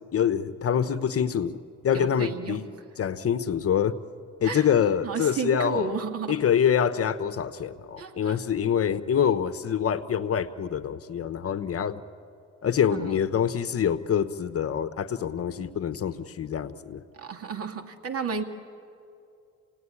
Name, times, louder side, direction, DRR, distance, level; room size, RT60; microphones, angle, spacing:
voice 1, 0.1-1.6 1.8-2.6 3.0-4.0 4.4-5.9 6.3-12.0 12.6-17.0, left 8 dB, 50° left, 13 dB, 1.0 m, -25 dB
voice 2, 1.9-2.6 4.4-4.7 5.0-6.4 8.0-8.4 12.9-13.3 17.1-18.4, right 5 dB, 50° right, 5 dB, 2.2 m, -32 dB
28.5 x 18.0 x 9.8 m, 2.5 s
cardioid pair, 90°, 30 cm